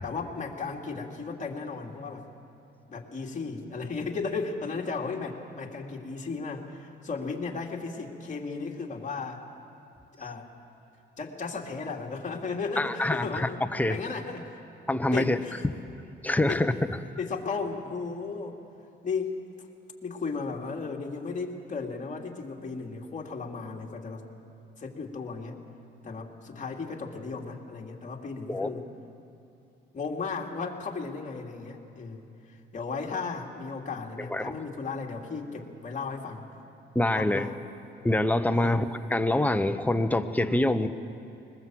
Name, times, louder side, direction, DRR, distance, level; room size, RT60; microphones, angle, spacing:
voice 1, 0.0-2.2 2.9-9.4 10.2-10.5 11.2-14.6 15.1-15.6 16.5-16.6 17.2-18.6 19.0-19.3 20.0-24.2 24.8-25.6 26.0-28.9 29.9-32.2 32.5-36.4 37.1-37.5 38.5-38.8, left 4 dB, 40° left, 0 dB, 2.8 m, -35 dB
voice 2, 12.8-14.0 14.9-15.4 16.2-16.7 28.5-28.7 34.3-34.5 36.9-37.5 38.0-40.9, left 1 dB, 10° left, 9 dB, 1.0 m, -25 dB
21.0 x 20.5 x 7.8 m, 2.7 s
cardioid pair, 90°, 20 cm